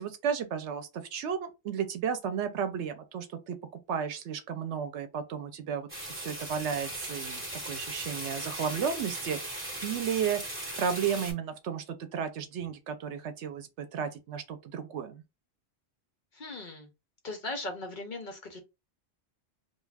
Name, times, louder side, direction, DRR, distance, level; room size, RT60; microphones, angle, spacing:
voice 1, 0.0-3.6 3.9-10.4 10.8-15.2, right 7 dB, 80° right, 0.9 m, -33 dB
sound 1, 5.9-11.3, right 1 dB, 10° right, 1.2 m, -38 dB
voice 2, 16.3-16.9 17.2-18.6, left 2 dB, 50° left, 0.7 m, -38 dB
2.4 x 2.3 x 3.2 m
omnidirectional pair, 1.2 m